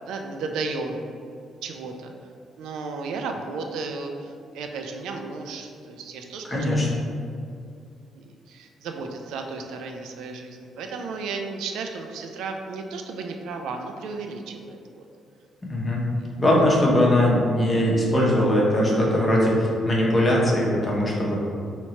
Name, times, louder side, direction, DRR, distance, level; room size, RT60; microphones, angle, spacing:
voice 1, 0.1-1.0 1.6-2.1 2.6-6.8 8.1-15.1 16.2-16.3, right 4 dB, 85° right, 4 dB, 0.3 m, -34 dB
voice 2, 6.4-6.9 15.6-16.1 16.4-21.4, left 1 dB, 25° left, -4 dB, 1.0 m, -20 dB
2.9 x 2.8 x 4.3 m, 2.4 s
cardioid pair, 90°, 0 cm